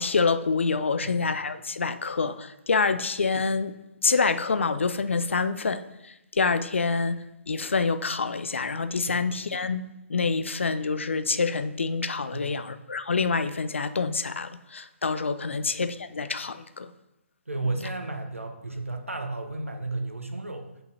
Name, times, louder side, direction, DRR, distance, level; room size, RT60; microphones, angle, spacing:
voice 1, 0.0-3.7 4.0-9.8 10.1-16.9, left 4 dB, 65° left, 0.4 m, -27 dB
voice 2, 12.3-12.7 15.5-15.6 17.5-20.7, right 2 dB, 80° right, 1.0 m, -33 dB
9.0 x 5.3 x 2.8 m
figure-of-eight pair, 135°, 7 cm